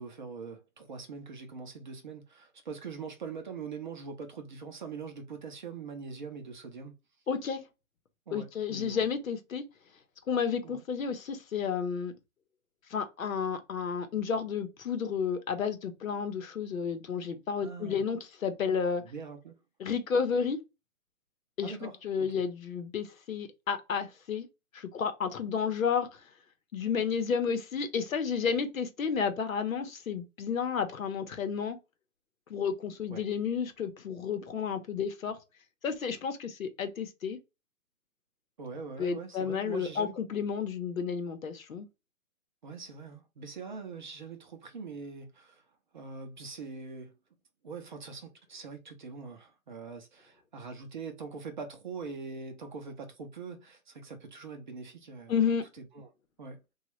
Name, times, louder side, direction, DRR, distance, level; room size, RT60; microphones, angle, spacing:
voice 1, 0.0-6.9 8.3-9.0 10.6-10.8 17.6-18.0 19.0-19.6 21.6-22.4 33.1-33.2 38.6-40.1 42.6-45.6 45.9-47.1 47.6-55.4 55.8-56.1 56.4-56.6, right 5 dB, 35° right, 0.5 m, -43 dB
voice 2, 7.3-7.6 8.3-9.6 10.3-12.1 12.9-19.0 19.8-20.6 21.6-24.5 24.7-26.2 26.7-31.8 32.5-35.4 35.8-37.4 39.0-41.9 55.3-55.7, left 6 dB, 70° left, 0.9 m, -31 dB
3.0 x 2.3 x 2.9 m
hypercardioid pair, 150°, 42 cm